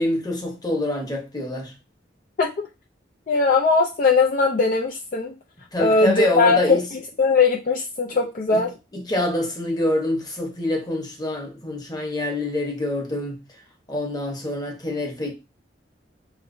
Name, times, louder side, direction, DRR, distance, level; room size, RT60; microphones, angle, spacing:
voice 1, 0.0-1.7 5.7-6.8 8.5-8.6 8.9-13.4 13.9-15.3, left 1 dB, 20° left, 1.0 m, -26 dB
voice 2, 3.3-5.3 5.8-6.8 7.2-8.7, left 4 dB, 50° left, 0.5 m, -19 dB
5.4 x 3.0 x 2.6 m
head